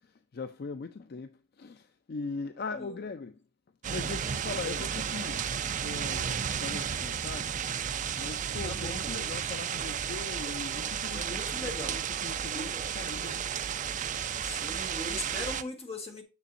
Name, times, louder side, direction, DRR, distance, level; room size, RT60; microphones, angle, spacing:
voice 1, 0.0-3.4 3.9-7.5 8.2-13.5, left 4 dB, 55° left, 0.4 m, -40 dB
sound 1, 3.8-15.6, right 8 dB, 40° right, 0.4 m, -33 dB
sound 2, 6.6-11.8, equal, 10° right, 3.6 m, -55 dB
voice 2, 8.6-9.2 11.1-12.0 12.5-12.8 14.4-16.2, left 2 dB, 35° left, 1.4 m, -40 dB
7.0 x 6.7 x 2.6 m
head